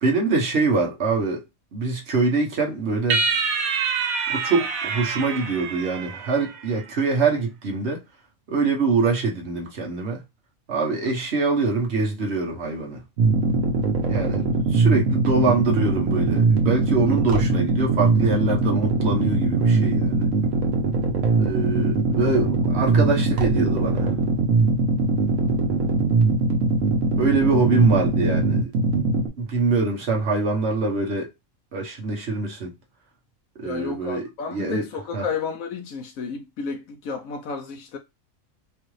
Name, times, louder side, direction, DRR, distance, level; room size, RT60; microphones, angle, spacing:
voice 1, 0.0-1.4 1.7-3.2 4.3-8.0 8.5-10.2 10.7-13.0 14.1-20.3 21.4-24.1 27.2-28.7 29.4-31.3 31.7-32.7 33.6-34.9 35.1-35.2, right 3 dB, 55° right, 1.3 m, -24 dB
sound 1, 3.1-6.7, right 5 dB, 90° right, 1.3 m, -26 dB
sound 2, 13.2-29.3, right 3 dB, 70° right, 1.2 m, -21 dB
voice 2, 33.6-38.0, left 5 dB, 75° left, 1.1 m, -32 dB
4.6 x 2.5 x 3.1 m
omnidirectional pair, 1.4 m